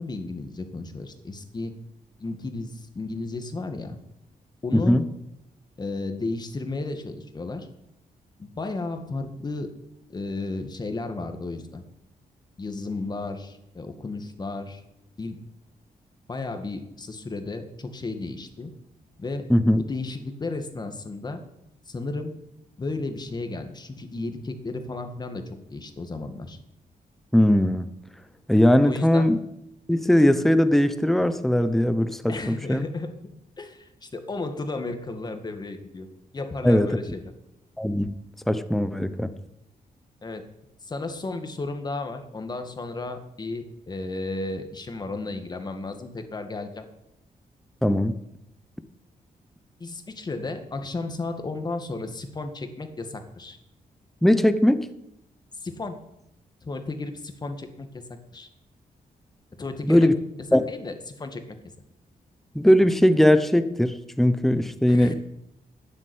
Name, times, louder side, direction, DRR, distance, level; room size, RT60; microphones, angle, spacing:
voice 1, 0.0-1.8 2.2-4.0 4.6-5.0 5.8-7.7 8.4-9.7 10.1-11.8 12.6-14.8 15.2-15.4 16.3-18.7 19.2-19.5 19.8-21.4 21.9-22.4 22.8-25.4 25.7-26.6 28.9-29.3 32.3-33.2 33.6-36.1 36.3-37.3 40.2-40.5 40.9-46.9 49.8-53.6 55.6-56.0 56.6-58.0 58.3-58.5 59.6-60.1 60.5-61.6 64.8-65.1, left 3 dB, 30° left, 7 dB, 1.9 m, -33 dB
voice 2, 4.7-5.0 19.5-19.8 27.3-27.9 28.5-29.4 29.9-32.8 36.6-36.9 37.8-38.1 38.5-39.3 47.8-48.1 54.2-54.9 59.8-60.1 60.5-60.6 62.5-65.1, left 1 dB, ahead, 11 dB, 0.9 m, -19 dB
12.5 x 9.8 x 9.6 m, 0.84 s
wide cardioid pair, 150°, 15 cm